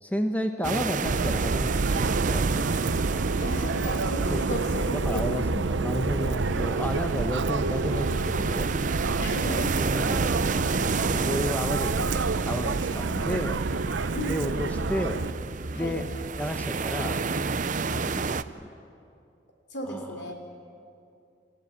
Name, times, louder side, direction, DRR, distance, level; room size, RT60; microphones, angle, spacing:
voice 1, 0.0-2.7 4.3-8.7 9.4-10.3 10.8-12.1 12.4-13.6 14.2-15.2 15.7-16.1 16.4-17.2 17.9-18.2 18.6-18.7 19.9-20.0, equal, 10° left, 5 dB, 1.0 m, -32 dB
sound 1, 0.6-18.4, right 4 dB, 45° right, 0.6 m, -31 dB
Subway metro underground, 1.1-15.3, right 4 dB, 80° right, 0.7 m, -28 dB
voice 2, 3.4-5.3 9.2-9.8 14.1-14.4 15.7-16.0 19.7-20.3, equal, 65° left, 4 dB, 3.5 m, -35 dB
29.0 x 15.0 x 9.7 m, 2.5 s
head